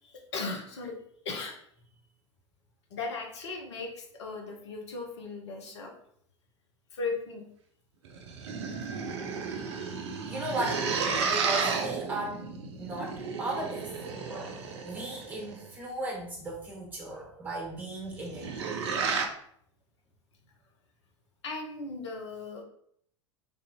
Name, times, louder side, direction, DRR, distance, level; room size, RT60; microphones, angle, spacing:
voice 1, 0.0-1.0 1.2-1.6 2.9-5.9 6.9-7.4 21.4-22.6, left 3 dB, 65° left, 2 dB, 0.7 m, -37 dB
sound 1, 8.0-15.7 18.1-19.3, right 5 dB, 60° right, 0.5 m, -33 dB
voice 2, 10.3-10.9 11.2-12.4 12.8-13.9 14.3-18.5, right 2 dB, 10° right, -3 dB, 1.4 m, -36 dB
3.3 x 2.6 x 2.7 m, 0.66 s
figure-of-eight pair, 80°, 16 cm